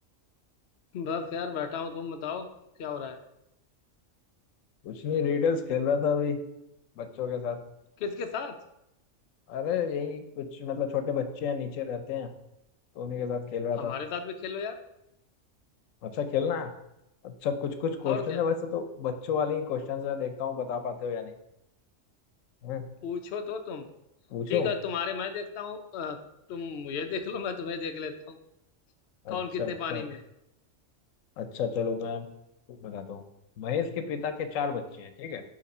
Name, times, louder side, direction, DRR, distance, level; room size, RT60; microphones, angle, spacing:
voice 1, 0.9-2.5 2.8-3.2 8.0-8.5 13.8-14.8 18.1-18.4 23.0-23.9 24.5-26.2 26.5-28.4 29.3-30.2, left 6 dB, 60° left, 6 dB, 0.8 m, -34 dB
voice 2, 4.8-6.4 7.0-7.6 9.5-12.3 13.0-13.9 16.0-16.7 17.2-21.3 22.6-22.9 24.3-24.7 29.2-30.0 31.4-32.3 32.7-33.2 33.6-35.4, left 7 dB, 90° left, 9 dB, 1.0 m, -30 dB
6.7 x 3.0 x 5.3 m, 0.85 s
omnidirectional pair, 1.3 m